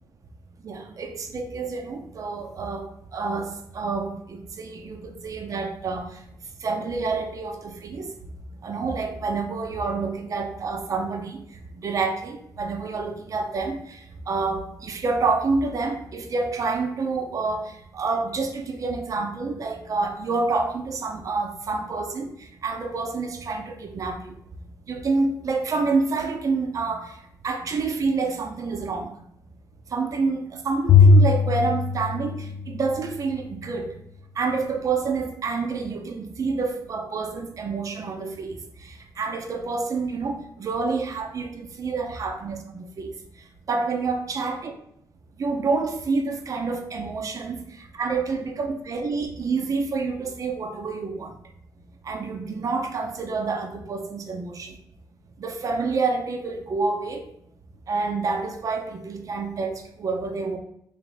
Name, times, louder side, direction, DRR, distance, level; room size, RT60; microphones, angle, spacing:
voice 1, 0.6-6.1 6.6-8.1 8.6-11.4 11.8-14.0 14.3-22.3 22.6-24.3 24.9-27.1 27.4-29.1 29.9-33.9 34.4-38.6 38.8-43.1 43.7-44.7 45.4-47.6 47.9-51.3 52.0-54.7 55.4-57.2 57.9-60.6, right 4 dB, 50° right, 5 dB, 0.7 m, -28 dB
Bowed string instrument, 30.9-33.3, left 4 dB, 75° left, 0.4 m, -18 dB
3.5 x 2.7 x 3.9 m, 0.75 s
cardioid pair, 75°, 7 cm